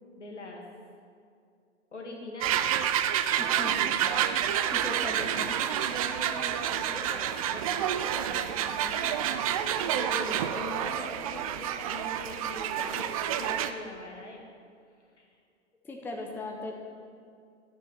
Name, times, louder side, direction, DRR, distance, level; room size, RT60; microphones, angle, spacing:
voice 1, 0.2-0.6 1.9-2.9 6.0-9.4 9.8-14.4 15.2-15.3, left 2 dB, 75° left, 1 dB, 1.8 m, -43 dB
sound 1, 2.4-13.7, right 10 dB, 30° right, 0.4 m, -29 dB
voice 2, 3.4-4.1 4.4-5.6 15.8-16.7, left 2 dB, 5° left, 1 dB, 0.7 m, -38 dB
12.5 x 6.8 x 4.6 m, 2.3 s
figure-of-eight pair, 100°, 36 cm